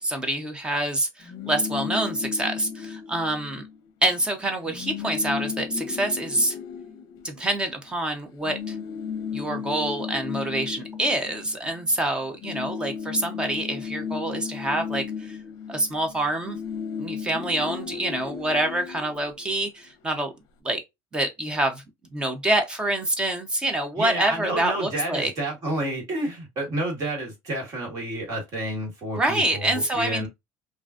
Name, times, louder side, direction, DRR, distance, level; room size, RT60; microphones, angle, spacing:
voice 1, 0.0-3.6 4.0-6.6 7.2-8.7 9.3-15.4 15.7-16.6 17.0-20.3 20.6-20.8 21.1-21.8 22.1-25.3 29.2-30.3, right 1 dB, 10° right, 0.6 m, -26 dB
sound 1, 1.2-3.8 4.1-4.2 4.5-7.9 8.4-12.0 12.3-19.9, left 6 dB, 45° left, 0.7 m, -35 dB
voice 2, 24.0-30.3, right 1 dB, 40° right, 1.6 m, -30 dB
3.7 x 2.4 x 2.4 m
cardioid pair, 175°, 9 cm